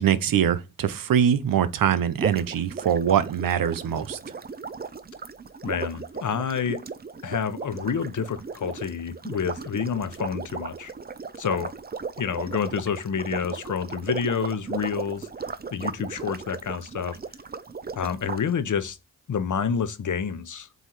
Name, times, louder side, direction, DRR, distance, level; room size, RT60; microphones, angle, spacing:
voice 1, 0.0-4.2, right 9 dB, 90° right, 0.7 m, -23 dB
sound 1, 2.1-18.4, right 5 dB, 30° right, 0.6 m, -36 dB
voice 2, 5.6-6.8 7.2-10.9 11.4-11.7 12.2-15.3 15.7-17.2 17.9-19.0 19.3-20.7, left 6 dB, 65° left, 0.9 m, -28 dB
7.9 x 2.8 x 4.6 m
cardioid pair, 50°, 33 cm